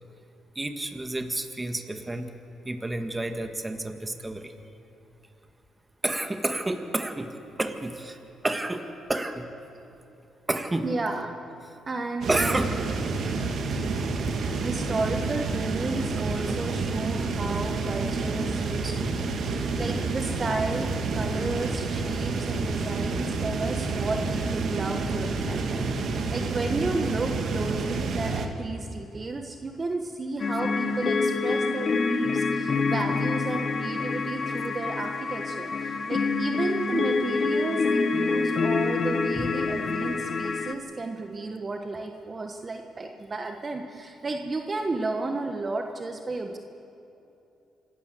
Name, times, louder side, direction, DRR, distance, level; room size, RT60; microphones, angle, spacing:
voice 1, 0.5-2.3 2.6-4.5 6.0-7.3 7.6-8.2 8.4-9.4 10.5-10.9 12.3-12.7 16.4-16.6 39.4-39.5, right 2 dB, 15° right, 7 dB, 1.6 m, -30 dB
voice 2, 10.8-11.3 11.9-12.6 14.6-46.6, right 3 dB, 30° right, 4 dB, 1.3 m, -33 dB
sound 1, 12.2-28.5, right 3 dB, 60° right, 1.9 m, -29 dB
sound 2, 30.4-40.7, left 4 dB, 45° left, 1.2 m, -26 dB
27.0 x 12.5 x 8.3 m, 2.8 s
cardioid pair, 90°, 0 cm